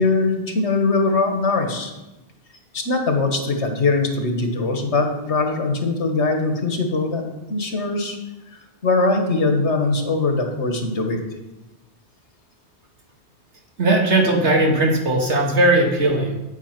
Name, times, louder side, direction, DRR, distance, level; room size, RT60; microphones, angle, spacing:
voice 1, 0.0-1.9 2.7-7.2 7.5-8.2 8.8-11.2, left 3 dB, 90° left, 4 dB, 1.8 m, -21 dB
voice 2, 13.8-16.4, right 2 dB, 85° right, 1 dB, 2.1 m, -18 dB
8.6 x 8.2 x 5.9 m, 1.0 s
omnidirectional pair, 1.1 m